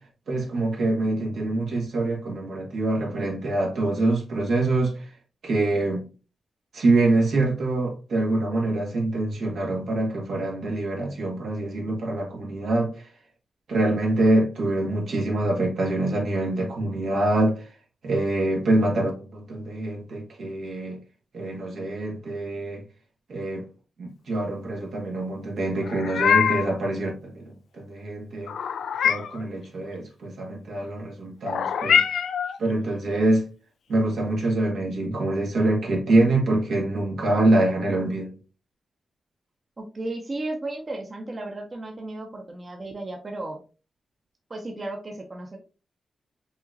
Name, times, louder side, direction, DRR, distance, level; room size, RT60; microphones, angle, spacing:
voice 1, 0.3-5.1 5.4-6.1 6.7-13.1 13.7-17.7 18.0-21.0 21.3-22.8 23.3-23.7 24.0-28.5 29.0-32.0 32.6-33.5 33.9-38.4, right 2 dB, 80° right, 1.6 m, -25 dB
Meow, 25.8-26.8 28.5-29.4 31.5-32.6, left 7 dB, 85° left, 0.3 m, -23 dB
voice 2, 39.8-43.6 44.5-45.6, right 2 dB, 40° right, 0.9 m, -34 dB
5.5 x 3.0 x 2.5 m
cardioid pair, 80°, 0 cm